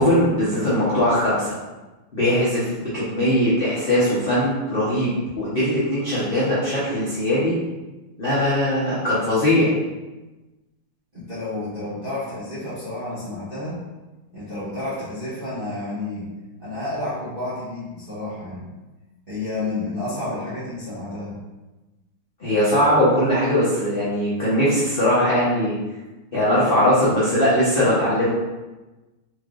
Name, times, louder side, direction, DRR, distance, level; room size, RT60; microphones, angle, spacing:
voice 1, 0.0-1.6 2.1-7.5 8.2-9.7 22.4-25.8 26.3-28.3, left 1 dB, 60° left, -9 dB, 0.5 m, -20 dB
voice 2, 11.1-13.8 14.3-16.3 16.6-18.7 19.3-21.4, left 2 dB, 40° right, -11 dB, 0.8 m, -30 dB
4.4 x 3.2 x 2.4 m, 1.1 s
omnidirectional pair, 2.3 m